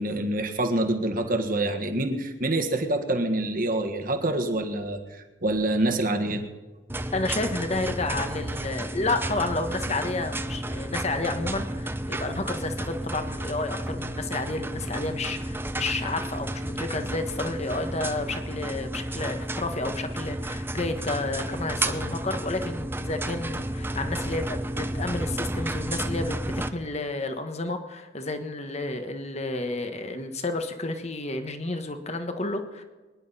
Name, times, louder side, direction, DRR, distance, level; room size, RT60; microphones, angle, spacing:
voice 1, 0.0-6.4, right 1 dB, 50° right, 5 dB, 1.7 m, -26 dB
sound 1, 6.9-26.7, right 1 dB, 10° right, 0.6 m, -32 dB
voice 2, 7.1-32.8, left 2 dB, 35° left, 7 dB, 1.3 m, -31 dB
24.0 x 11.0 x 4.2 m, 1.3 s
head